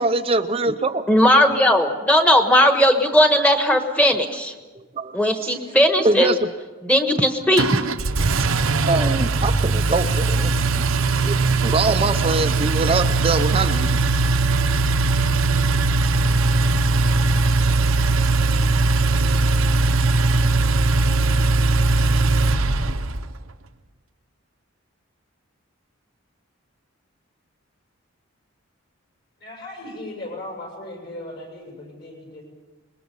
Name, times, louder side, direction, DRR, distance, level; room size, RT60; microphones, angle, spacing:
voice 1, 0.0-1.0 4.8-5.1 5.4-5.6 6.0-6.5 8.6-10.8 11.2-14.0, right 3 dB, 25° right, 8 dB, 0.6 m, -23 dB
voice 2, 1.1-4.5 5.1-6.4 6.8-7.7, equal, 5° left, 6 dB, 1.4 m, -17 dB
Engine, 7.6-23.3, right 3 dB, 75° right, 0.9 m, -19 dB
voice 3, 29.4-32.4, left 1 dB, 50° left, 0 dB, 7.1 m, -37 dB
26.5 x 21.5 x 5.4 m, 1.3 s
head